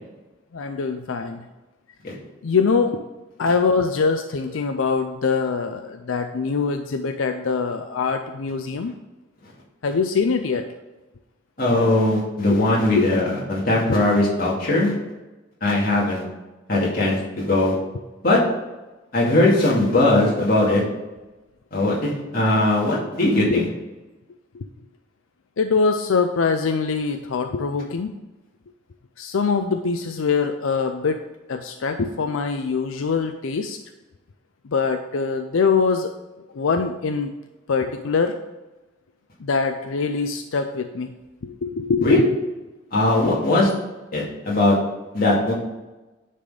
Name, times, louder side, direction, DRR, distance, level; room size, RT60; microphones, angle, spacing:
voice 1, 0.5-1.5 2.4-3.0 3.4-8.9 9.8-10.7 12.5-12.6 13.0-13.3 13.9-14.1 23.5-23.7 24.5-24.6 25.6-28.1 29.2-31.2 31.5-33.8 34.6-36.1 36.5-37.3 37.7-38.4 39.4-41.1 41.4-42.3, left 5 dB, 90° left, 7 dB, 0.5 m, -23 dB
voice 2, 11.6-14.9 15.6-16.2 16.7-17.7 18.2-18.4 19.1-20.8 21.7-23.6 42.0-42.2 42.9-43.7 44.1-44.8 45.1-45.5, left 2 dB, 45° left, -5 dB, 2.4 m, -19 dB
10.0 x 4.2 x 5.0 m, 1.1 s
head